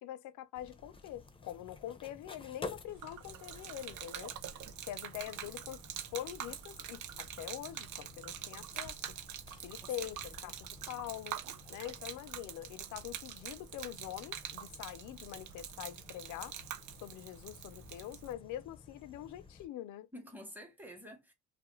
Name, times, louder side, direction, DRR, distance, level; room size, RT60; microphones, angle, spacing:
voice 1, 0.0-4.4 4.8-5.8 6.1-9.2 9.6-10.6 10.9-11.4 11.7-16.6 17.0-20.1, left 12 dB, 75° left, 0.5 m, -44 dB
sound 1, 0.6-19.7, left 3 dB, 20° left, 0.5 m, -53 dB
Gurgling / Liquid, 2.9-18.3, right 10 dB, 75° right, 0.5 m, -45 dB
voice 2, 9.8-10.6 20.1-21.3, equal, 5° right, 1.0 m, -50 dB
2.4 x 2.0 x 3.0 m
cardioid pair, 90°, 30 cm